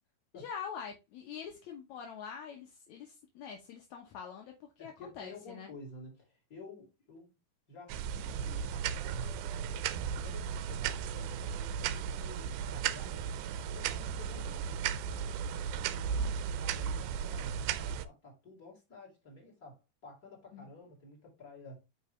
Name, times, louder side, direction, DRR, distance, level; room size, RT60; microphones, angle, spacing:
voice 1, 0.3-5.7 20.5-20.7, left 7 dB, 65° left, 1.9 m, -45 dB
voice 2, 4.8-7.3 7.7-9.4 10.2-15.6 15.9-21.8, left 3 dB, 20° left, 3.9 m, -52 dB
sound 1, 7.9-18.1, right 8 dB, 80° right, 2.4 m, -35 dB
9.4 x 4.8 x 3.2 m
omnidirectional pair, 4.4 m